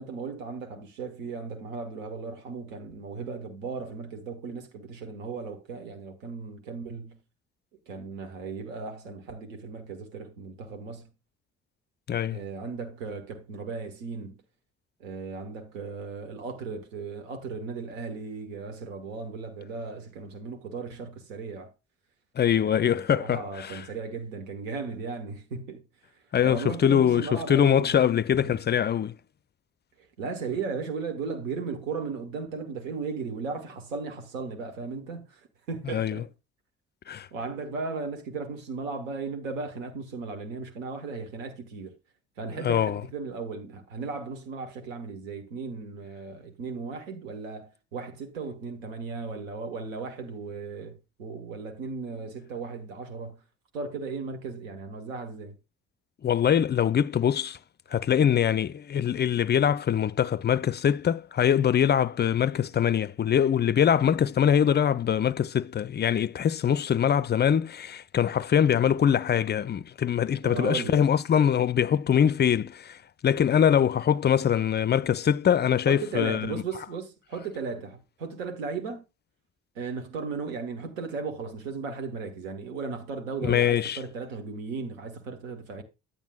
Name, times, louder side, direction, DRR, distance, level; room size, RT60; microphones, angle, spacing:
voice 1, 0.0-7.2 7.9-11.1 12.3-14.4 15.0-21.7 22.5-25.8 26.1-28.0 28.4-28.6 30.0-36.3 37.3-42.0 42.4-53.4 53.7-55.6 70.4-71.0 75.9-79.0 79.7-85.8, right 4 dB, 80° right, 1.3 m, -36 dB
voice 2, 12.1-12.4 22.4-23.8 26.3-29.2 35.9-36.2 37.1-37.3 42.6-43.0 56.2-57.6 57.9-76.6 83.4-84.0, left 9 dB, 30° left, 0.4 m, -23 dB
10.0 x 9.1 x 2.3 m
hypercardioid pair, 45°, 38 cm